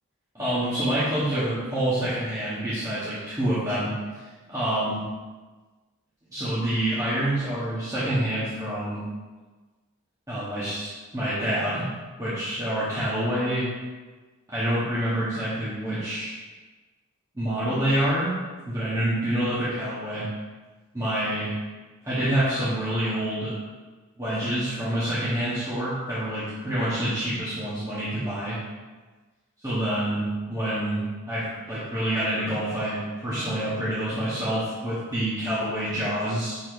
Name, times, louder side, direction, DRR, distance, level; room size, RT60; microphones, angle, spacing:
voice 1, 0.3-4.2 4.5-5.0 6.3-9.0 10.3-11.9 12.2-13.7 14.5-16.4 17.3-18.3 18.7-20.3 20.9-21.5 22.0-23.6 24.2-28.6 29.6-36.6, right 1 dB, 15° right, -12 dB, 1.7 m, -27 dB
7.0 x 4.6 x 4.6 m, 1.3 s
head